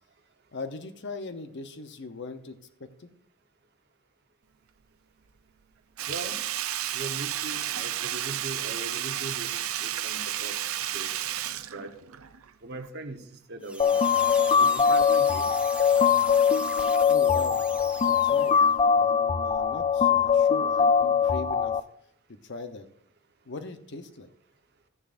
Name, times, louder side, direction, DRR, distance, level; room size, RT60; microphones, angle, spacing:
voice 1, 0.5-3.1 17.1-17.6 18.0-18.5 18.9-21.8 22.3-22.9 23.5-24.3, left 3 dB, 55° left, 9 dB, 0.8 m, -39 dB
Sink (filling or washing), 6.0-12.5 12.8-12.9, right 12 dB, 80° right, 0.5 m, -32 dB
voice 2, 6.1-6.4 6.9-9.6 9.8-10.5 10.9-11.1 11.7-11.9 12.6-13.2 13.5-13.9 14.6-15.5, right 2 dB, 50° right, 6 dB, 1.1 m, -39 dB
sound 1, 13.6-18.8, right 2 dB, 5° right, 0.9 m, -40 dB
sound 2, 13.8-21.8, left 7 dB, 30° left, 0.3 m, -22 dB
13.5 x 10.5 x 2.5 m, 0.68 s
head